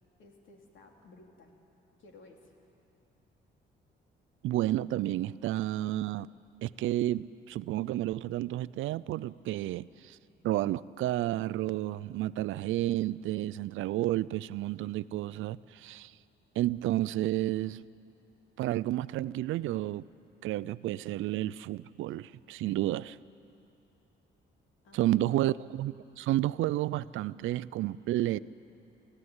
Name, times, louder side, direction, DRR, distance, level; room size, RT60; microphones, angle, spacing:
voice 1, 0.2-1.6 2.0-2.5 24.8-25.6, left 2 dB, 75° left, 3.3 m, -56 dB
voice 2, 4.4-6.3 6.6-10.2 10.4-16.1 16.6-17.8 18.6-20.0 20.4-23.2 24.9-28.4, right 15 dB, 80° right, 0.5 m, -31 dB
25.0 x 15.0 x 9.7 m
cardioid pair, 90°, 20 cm